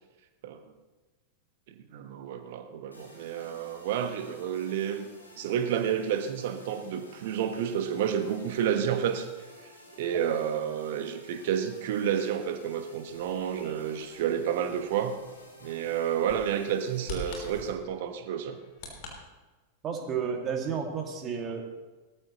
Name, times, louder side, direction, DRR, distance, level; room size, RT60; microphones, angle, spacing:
voice 1, 1.9-5.1 5.4-9.3 10.0-15.2 15.6-18.6, right 9 dB, 55° right, 7 dB, 1.4 m, -30 dB
sound 1, 2.9-17.7, left 1 dB, 80° left, 2.7 m, -53 dB
Bird vocalization bird call bird song, 13.1-19.1, left 2 dB, 50° left, 3.4 m, -46 dB
voice 2, 19.8-21.6, right 6 dB, 30° right, 2 dB, 2.3 m, -32 dB
19.0 x 13.5 x 3.1 m, 1.2 s
figure-of-eight pair, 90°, 0 cm